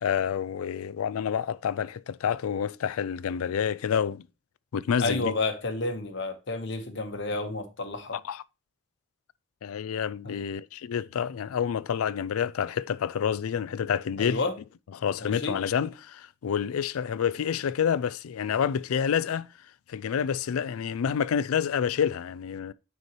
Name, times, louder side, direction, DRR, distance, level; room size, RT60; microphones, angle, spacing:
voice 1, 0.0-4.2 4.7-5.3 8.1-8.4 9.6-14.4 15.0-19.5 19.9-22.7, left 7 dB, 85° left, 0.4 m, -28 dB
voice 2, 5.0-8.2 10.2-10.3 14.2-14.5 15.2-15.6, left 3 dB, 55° left, 1.1 m, -30 dB
9.4 x 4.4 x 3.0 m
head